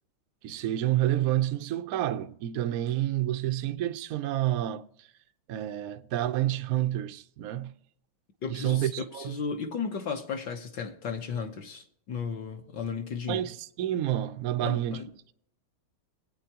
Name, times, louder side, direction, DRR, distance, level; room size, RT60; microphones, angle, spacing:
voice 1, 0.4-5.1 5.5-7.7 8.5-9.4 13.3-15.3, right 13 dB, 85° right, 0.7 m, -29 dB
voice 2, 8.4-13.4 14.6-15.1, left 5 dB, 60° left, 1.5 m, -35 dB
21.0 x 8.9 x 2.9 m
omnidirectional pair, 2.4 m